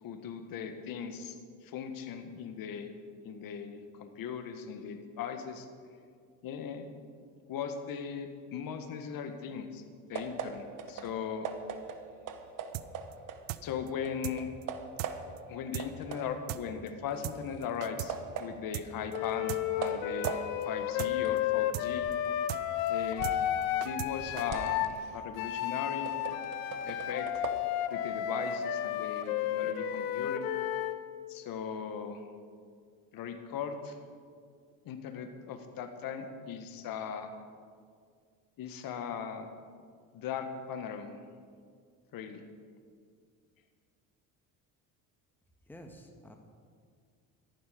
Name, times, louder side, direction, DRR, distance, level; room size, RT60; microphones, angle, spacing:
voice 1, 0.0-1.4 1.6-2.9 3.2-5.7 6.4-6.9 7.5-9.8 10.1-11.5 13.6-14.5 15.5-22.1 22.9-23.3 23.8-26.2 26.8-27.3 27.9-30.5 31.3-32.2 33.1-34.0 34.8-37.3 38.6-39.5 40.1-41.1 42.1-42.4, left 7 dB, 60° left, 8 dB, 1.6 m, -38 dB
sound 1, 10.1-13.8 14.0-15.5 15.8-23.5 23.9-27.6, right 6 dB, 50° right, 1.3 m, -41 dB
sound 2, 12.7-12.9 13.1-13.2 13.5-13.6 13.9-14.0 14.2-14.4 14.6-14.7 15.0-15.1 15.4-15.5 15.7-15.9 16.1-16.2 16.5-16.6 16.9-17.0 17.2-17.4 17.6-18.1 18.4-18.5 18.7-18.9 19.1-19.2 19.5-19.6 19.9-20.0 20.2-20.4 20.6-20.7 21.0-21.1 21.4-21.5 21.7-21.9 22.1-22.2 22.5-22.6 22.9-23.0 23.2-23.4 23.6-24.1 24.4-24.5, right 18 dB, 80° right, 0.7 m, -37 dB
Wind instrument woodwind instrument, 19.1-24.9 25.4-31.0, left 11 dB, 80° left, 0.9 m, -32 dB
voice 2, 45.7-46.4, equal, 5° left, 3 dB, 1.5 m, -50 dB
14.0 x 11.0 x 5.2 m, 2.1 s
supercardioid pair, 75°, 40 cm